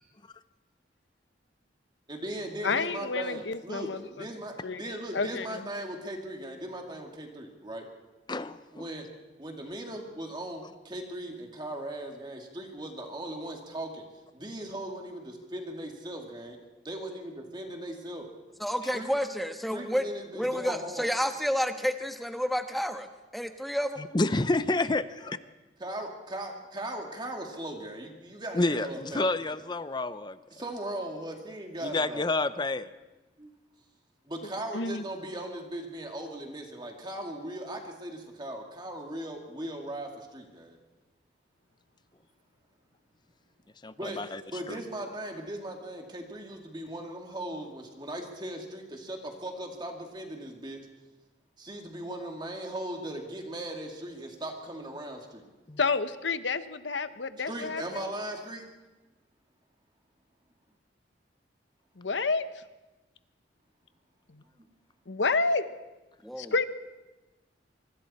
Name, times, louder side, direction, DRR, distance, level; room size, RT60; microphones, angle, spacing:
voice 1, 2.1-7.8 8.7-9.0 9.4-14.0 14.3-16.6 16.8-18.3 18.9-19.1 19.7-21.1 25.8-29.6 30.5-32.3 33.4-33.5 34.3-40.8 44.0-44.2 44.5-50.8 51.6-55.4 57.5-58.6 64.6-64.7, right 1 dB, 25° right, 2 dB, 2.4 m, -38 dB
voice 2, 2.6-4.0 4.6-5.7 34.7-35.0 55.8-58.1 62.0-62.6 64.3-64.4 65.1-65.6 66.4-66.6, left 4 dB, 80° left, 11 dB, 1.0 m, -30 dB
voice 3, 8.3-8.9 24.0-25.4 28.5-30.4 31.8-32.9 43.8-44.4 44.7-44.8 55.7-55.8, left 2 dB, 25° left, 13 dB, 0.6 m, -29 dB
voice 4, 18.6-20.1 20.3-24.0 66.2-66.5, equal, ahead, 6 dB, 1.2 m, -30 dB
24.5 x 24.0 x 4.3 m, 1.1 s
head